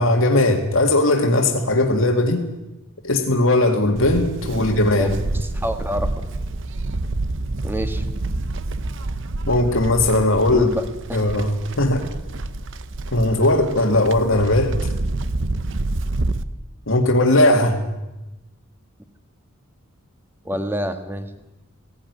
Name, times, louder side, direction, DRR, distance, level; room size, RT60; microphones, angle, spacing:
voice 1, 0.0-2.5 3.0-5.2 9.5-10.7 11.1-12.0 13.1-14.8 16.9-17.8, left 1 dB, 65° left, 3 dB, 2.1 m, -18 dB
Livestock farm animals working animals, 4.0-16.4, right 2 dB, 60° right, 0.9 m, -28 dB
voice 2, 4.5-6.3 7.6-8.0 10.5-10.8 11.1-11.3 20.4-21.3, equal, 10° right, 8 dB, 1.5 m, -28 dB
17.0 x 17.0 x 9.5 m, 1.0 s
head